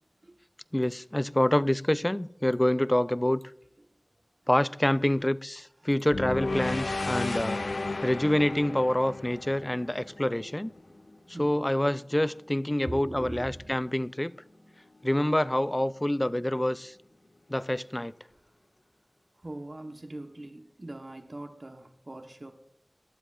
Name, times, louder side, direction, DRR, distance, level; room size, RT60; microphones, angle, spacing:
voice 1, 0.7-3.4 4.5-7.6 8.0-10.7 11.3-14.3 15.0-16.9 17.5-18.1, left 1 dB, 20° left, 0.4 m, -26 dB
sound 1, 6.1-10.4, left 3 dB, 85° left, 0.3 m, -33 dB
sound 2, 8.9-19.6, left 1 dB, 65° left, 1.6 m, -58 dB
voice 2, 12.9-13.5 19.4-22.5, right 1 dB, 50° right, 1.1 m, -41 dB
23.0 x 12.0 x 2.5 m
wide cardioid pair, 50°, 0 cm